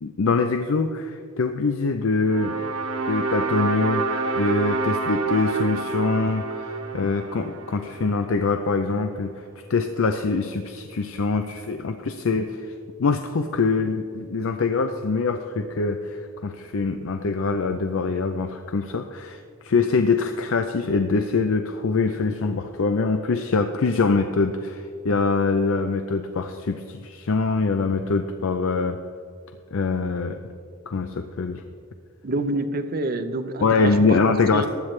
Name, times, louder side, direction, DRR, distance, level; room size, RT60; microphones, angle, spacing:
voice 1, 0.0-2.5 3.1-12.7 13.0-29.0 29.7-30.4 30.9-31.6 33.6-34.7, left 4 dB, 70° left, 7 dB, 0.5 m, -24 dB
sound 1, 2.2-8.5, right 4 dB, 90° right, 1.1 m, -28 dB
voice 2, 32.2-34.2 34.5-34.7, right 2 dB, 45° right, 8 dB, 0.7 m, -27 dB
15.5 x 10.5 x 3.2 m, 2.2 s
head